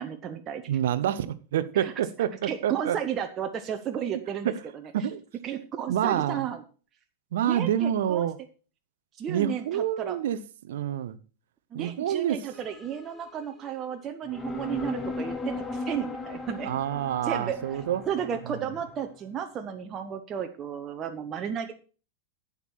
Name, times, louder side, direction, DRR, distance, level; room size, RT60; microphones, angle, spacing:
voice 1, 0.0-0.6 1.7-1.9 2.4-4.5 4.8-4.9 5.4-6.6 7.4-8.3 9.2-10.2 11.7-16.7 17.2-17.6 18.1-21.7, right 8 dB, 30° right, 1.1 m, -33 dB
voice 2, 0.7-3.0 4.4-4.6 4.9-5.2 5.9-6.5 7.3-8.4 9.3-10.4 10.6-11.2 11.7-12.4 16.6-18.1 18.5-18.6, right 10 dB, 60° right, 0.9 m, -27 dB
sound 1, 12.5-13.7 14.3-19.0, left 3 dB, 15° left, 1.6 m, -37 dB
11.5 x 8.5 x 4.3 m
figure-of-eight pair, 90°, 0 cm